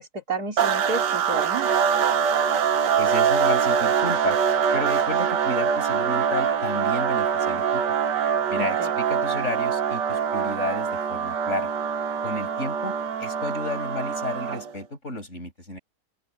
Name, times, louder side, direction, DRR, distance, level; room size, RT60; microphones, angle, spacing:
voice 1, 0.0-1.7 8.6-8.9, right 3 dB, 60° right, 3.9 m, -31 dB
sound 1, 0.6-14.8, right 7 dB, 90° right, 1.8 m, -24 dB
voice 2, 3.0-4.4 4.7-7.8 8.5-11.7 12.2-15.8, left 2 dB, 45° left, 6.9 m, -32 dB
open air
omnidirectional pair, 1.8 m